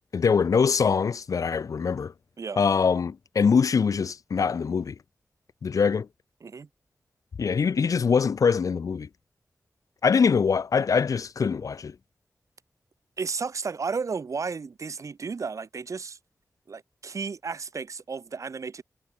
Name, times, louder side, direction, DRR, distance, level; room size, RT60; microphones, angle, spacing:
voice 1, 0.1-2.1 2.6-4.9 5.6-6.1 7.4-9.1 10.0-11.9, left 6 dB, 75° left, 1.1 m, -23 dB
voice 2, 13.2-16.2 16.7-18.8, right 5 dB, 65° right, 6.3 m, -33 dB
wide cardioid pair, 125°, 6 cm